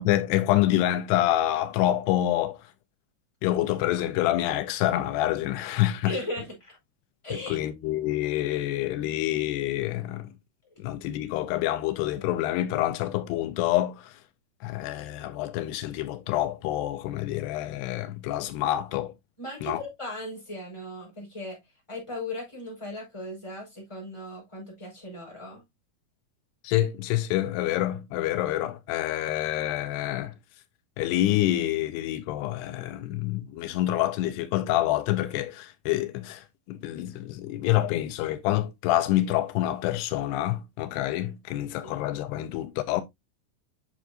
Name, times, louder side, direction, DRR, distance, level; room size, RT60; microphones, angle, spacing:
voice 1, 0.0-2.6 3.4-6.2 7.5-10.3 10.8-14.1 14.6-19.1 19.6-19.8 26.6-30.3 31.0-43.0, left 14 dB, 85° left, 2.8 m, -27 dB
voice 2, 6.0-6.8 7.2-7.6 10.7-10.8 19.4-21.6 21.9-25.6 41.8-41.9, left 1 dB, 5° left, 4.2 m, -37 dB
8.2 x 6.1 x 2.5 m
omnidirectional pair, 4.7 m